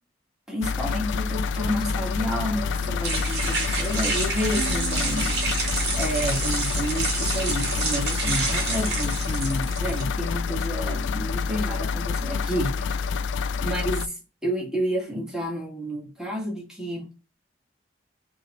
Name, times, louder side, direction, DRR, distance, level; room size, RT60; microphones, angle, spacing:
voice 1, 0.5-13.2 13.6-14.1 14.4-17.1, equal, 5° right, 1.6 m, -30 dB
sound 1, 0.6-14.1, left 5 dB, 85° left, 0.3 m, -28 dB
sound 2, 1.4-10.0, right 3 dB, 60° right, 1.7 m, -29 dB
sound 3, 4.6-7.6, right 5 dB, 30° right, 1.5 m, -39 dB
6.0 x 3.0 x 2.5 m
head